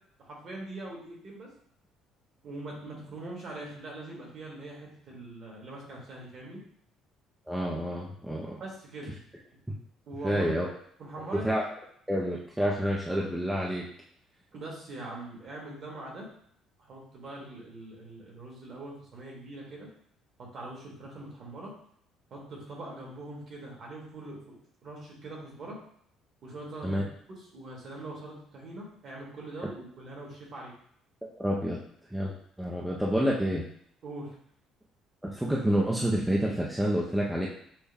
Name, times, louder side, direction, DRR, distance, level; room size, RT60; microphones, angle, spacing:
voice 1, 0.2-1.5 2.4-6.6 8.6-9.2 10.1-10.5 11.0-11.4 14.5-16.3 16.8-19.9 20.4-21.7 22.3-25.8 26.4-27.1 27.4-30.7 34.0-34.4, right 2 dB, 40° right, -2 dB, 1.5 m, -42 dB
voice 2, 7.5-8.6 10.2-10.7 11.3-11.6 12.1-13.9 26.8-27.0 31.4-31.8 32.1-33.6 35.2-37.5, equal, 5° right, -4 dB, 0.5 m, -28 dB
6.3 x 2.2 x 3.4 m, 0.66 s
cardioid pair, 150°, 0 cm